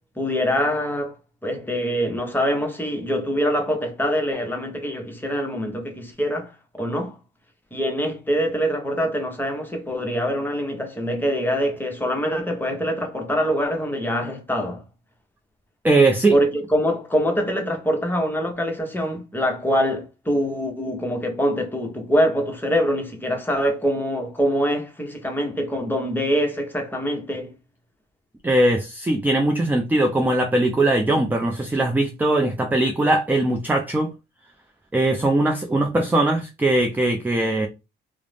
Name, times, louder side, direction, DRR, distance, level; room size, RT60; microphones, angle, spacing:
voice 1, 0.2-1.1 1.4-7.2 7.7-14.8 16.3-27.5, equal, 10° left, 0.8 m, -24 dB
voice 2, 15.8-16.3 28.4-34.1 34.9-37.7, right 2 dB, 10° right, 0.4 m, -20 dB
2.4 x 2.0 x 3.2 m
cardioid pair, 90°, 20 cm